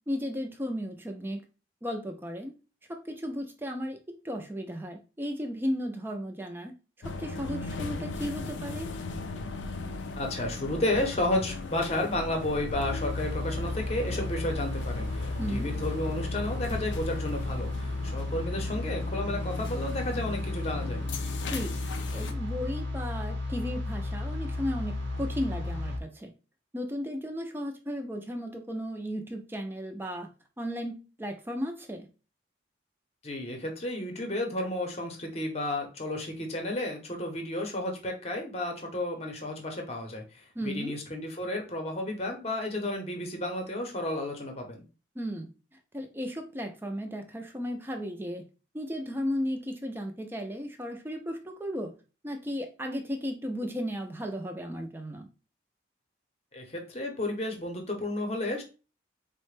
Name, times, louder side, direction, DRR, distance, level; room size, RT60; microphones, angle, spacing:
voice 1, 0.1-1.4 1.8-2.5 2.9-4.0 4.2-6.7 7.0-8.9 15.4-15.7 21.5-21.8 22.1-26.3 26.7-30.3 30.6-32.1 40.6-40.9 45.2-45.5 45.9-48.4 48.7-51.9 52.2-55.3, equal, 10° right, 4 dB, 0.4 m, -35 dB
sound 1, 7.0-22.3, left 3 dB, 75° left, 0.4 m, -38 dB
voice 2, 10.2-21.0 33.2-44.8 56.5-58.6, left 1 dB, 35° left, 3 dB, 0.7 m, -32 dB
sound 2, 12.7-26.0, left 2 dB, 80° right, 0.8 m, -33 dB
4.0 x 2.1 x 3.2 m, 0.33 s
head